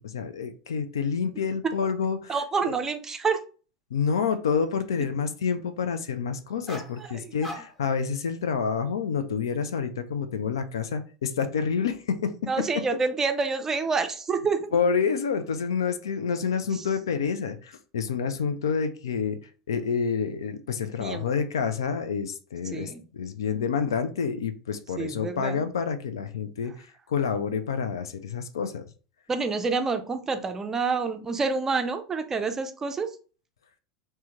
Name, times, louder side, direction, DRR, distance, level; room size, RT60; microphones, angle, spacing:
voice 1, 0.0-2.4 2.6-2.7 3.9-12.5 14.7-19.4 19.7-26.7 27.1-28.9, left 6 dB, 65° left, 10 dB, 0.3 m, -28 dB
voice 2, 2.3-3.4 7.0-7.3 12.5-14.8 16.7-16.8 21.0-21.2 22.7-23.0 25.0-25.6 29.3-33.1, right 4 dB, 20° right, 7 dB, 0.4 m, -28 dB
sound 1, 6.7-7.0 7.4-8.0 8.5-8.8, equal, 10° left, 0.8 m, -40 dB
3.3 x 2.2 x 2.8 m, 0.37 s
figure-of-eight pair, 80°, 2 cm